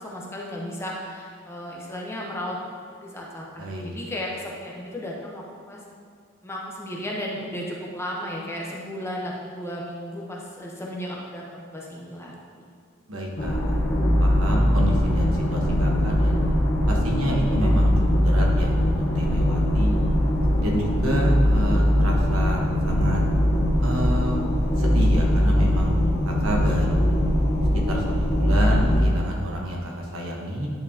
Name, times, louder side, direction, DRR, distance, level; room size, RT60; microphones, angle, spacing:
voice 1, 0.0-2.6 2.9-5.8 6.4-12.6, left 1 dB, 10° left, -3 dB, 0.9 m, -34 dB
voice 2, 3.6-3.9 13.1-16.4 16.9-20.0 20.6-23.2 23.8-24.4 24.8-25.9 26.3-27.2 27.9-30.7, equal, 90° right, -1 dB, 1.2 m, -29 dB
sound 1, 13.4-29.1, equal, 55° left, 1.0 m, -21 dB
10.5 x 4.6 x 2.8 m, 2.2 s
head